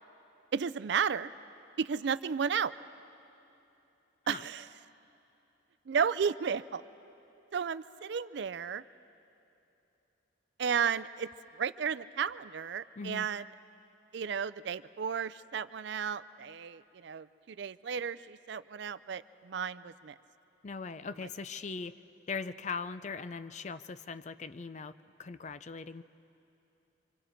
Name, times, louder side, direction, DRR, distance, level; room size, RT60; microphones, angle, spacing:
voice 1, 0.5-1.3 1.8-2.7 4.3-4.7 5.9-6.8 7.5-8.8 10.6-11.3 11.6-13.4 14.1-20.1, right 7 dB, 60° right, 15 dB, 0.4 m, -33 dB
voice 2, 13.0-13.3 20.6-22.0 22.3-26.0, left 4 dB, 35° left, 13 dB, 0.4 m, -40 dB
26.0 x 25.5 x 4.5 m, 2.9 s
head